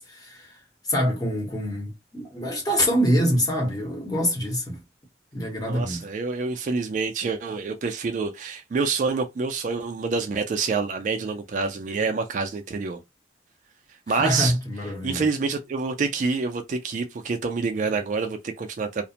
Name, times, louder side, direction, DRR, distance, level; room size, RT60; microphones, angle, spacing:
voice 1, 0.0-4.8 5.3-6.0 14.1-15.3, equal, 20° left, 0.9 m, -25 dB
voice 2, 5.6-13.0 14.1-14.5 15.0-19.0, right 4 dB, 45° right, 0.3 m, -27 dB
2.4 x 2.0 x 2.8 m
head